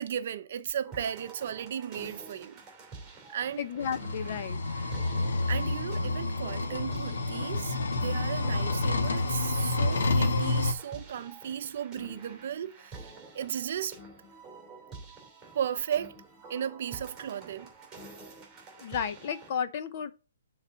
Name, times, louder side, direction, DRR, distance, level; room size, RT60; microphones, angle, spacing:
voice 1, 0.0-2.6 3.3-3.6 5.5-14.0 15.5-16.2 16.5-17.7, right 9 dB, 45° right, 0.7 m, -35 dB
sound 1, 0.8-19.5, right 3 dB, 5° right, 3.1 m, -49 dB
voice 2, 3.6-4.6 18.8-20.1, left 7 dB, 35° left, 0.7 m, -33 dB
sound 2, 3.8-10.7, left 2 dB, 80° left, 1.3 m, -29 dB
7.2 x 4.0 x 6.1 m
hypercardioid pair, 170°, 0 cm